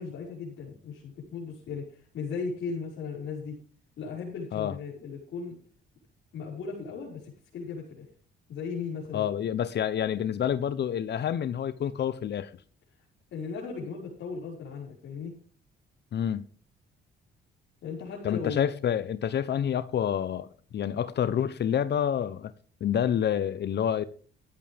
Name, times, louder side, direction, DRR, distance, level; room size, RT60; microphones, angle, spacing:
voice 1, 0.0-3.6 4.0-5.5 6.3-8.1 8.5-9.3 13.3-15.3 17.8-18.7, left 5 dB, 75° left, 5.5 m, -37 dB
voice 2, 9.1-12.5 16.1-16.4 18.2-22.5 22.8-24.0, left 9 dB, 60° left, 1.0 m, -28 dB
14.0 x 12.5 x 3.5 m
cardioid pair, 90°, 20 cm